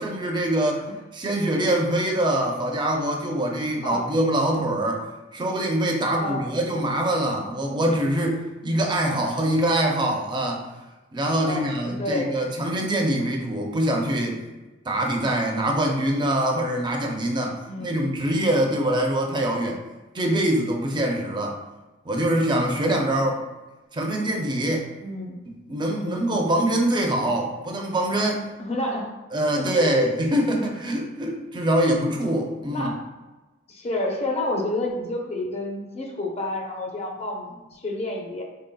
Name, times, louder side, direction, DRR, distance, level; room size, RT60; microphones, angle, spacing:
voice 1, 0.0-0.9 1.1-5.0 5.3-10.7 11.1-14.4 14.8-19.8 20.1-21.6 22.1-23.4 23.9-24.9 25.7-28.4 29.3-32.9, right 1 dB, 25° right, 1 dB, 0.5 m, -24 dB
voice 2, 11.4-12.3 17.7-18.1 25.0-25.3 26.0-26.4 28.6-29.1 29.6-30.0 31.3-31.4 32.7-33.0 33.7-38.4, left 1 dB, 35° left, 0 dB, 0.7 m, -30 dB
4.0 x 3.8 x 2.2 m, 1.2 s
head